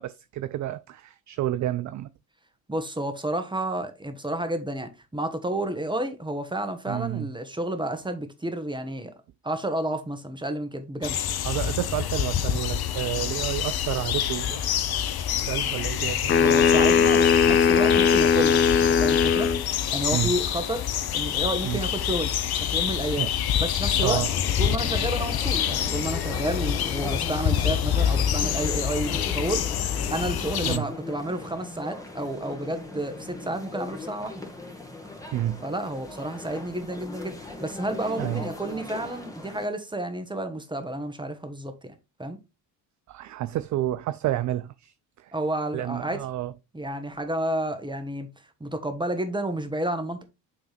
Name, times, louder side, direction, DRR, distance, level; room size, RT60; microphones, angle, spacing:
voice 1, 0.0-2.1 6.9-7.3 11.4-14.6 15.3-16.5 20.1-20.3 21.6-21.8 23.2-23.3 24.0-24.3 30.6-30.9 35.3-35.6 38.2-38.4 43.1-45.3 45.7-46.5, right 13 dB, 40° right, 0.4 m, -30 dB
voice 2, 2.7-9.1 9.4-11.2 16.4-19.5 19.9-20.9 21.1-23.3 23.6-24.2 24.6-29.7 30.1-34.5 35.6-37.3 37.6-42.4 45.3-46.2 46.7-48.3 48.6-50.2, right 1 dB, 10° right, 1.4 m, -31 dB
sound 1, 11.0-30.8, left 9 dB, 50° left, 0.8 m, -27 dB
sound 2, 16.3-19.6, left 6 dB, 25° left, 0.5 m, -19 dB
sound 3, 24.0-39.7, left 2 dB, 5° left, 1.6 m, -39 dB
8.4 x 3.5 x 3.4 m
hypercardioid pair, 55°, 50 cm